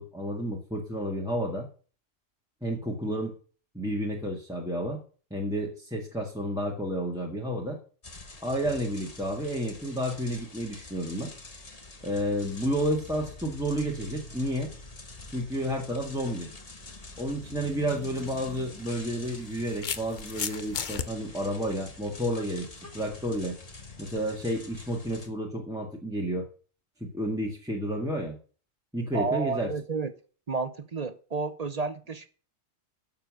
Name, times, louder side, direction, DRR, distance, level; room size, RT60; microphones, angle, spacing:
voice 1, 0.0-1.7 2.6-3.3 3.7-5.0 5.3-7.8 8.4-11.3 12.0-14.7 15.3-16.5 17.2-22.7 22.9-23.6 24.0-26.5 27.0-28.4 28.9-29.7, equal, 5° right, 1.7 m, -31 dB
sound 1, 8.0-25.3, left 3 dB, 30° left, 1.5 m, -46 dB
sound 2, 17.9-18.1 19.1-21.1, left 7 dB, 45° left, 0.8 m, -34 dB
voice 2, 29.1-30.1 30.5-32.3, right 4 dB, 35° right, 0.8 m, -31 dB
11.5 x 7.1 x 6.4 m
omnidirectional pair, 1.3 m